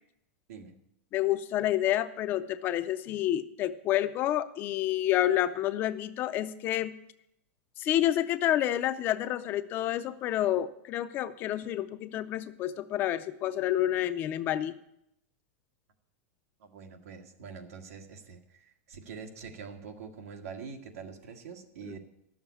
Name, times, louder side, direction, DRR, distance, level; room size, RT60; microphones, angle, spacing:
voice 1, 1.1-7.0 7.8-14.7 21.8-22.0, left 12 dB, 25° left, 12 dB, 0.4 m, -29 dB
voice 2, 16.6-22.0, right 5 dB, 85° right, 4 dB, 1.7 m, -45 dB
11.5 x 7.2 x 8.2 m, 0.80 s
supercardioid pair, 165°, 8 cm